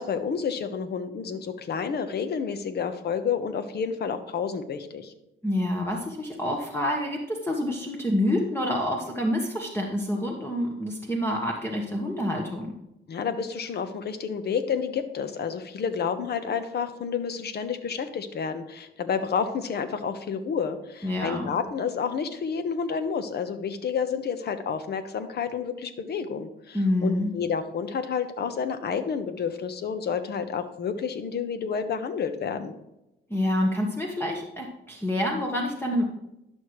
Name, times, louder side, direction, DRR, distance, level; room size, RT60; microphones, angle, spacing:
voice 1, 0.0-5.1 13.1-32.7, left 6 dB, 55° left, 10 dB, 1.0 m, -30 dB
voice 2, 5.4-12.7 21.0-21.5 26.7-27.3 33.3-36.1, left 1 dB, 10° left, 0 dB, 1.2 m, -27 dB
11.5 x 6.3 x 3.2 m, 0.90 s
cardioid pair, 90°, 20 cm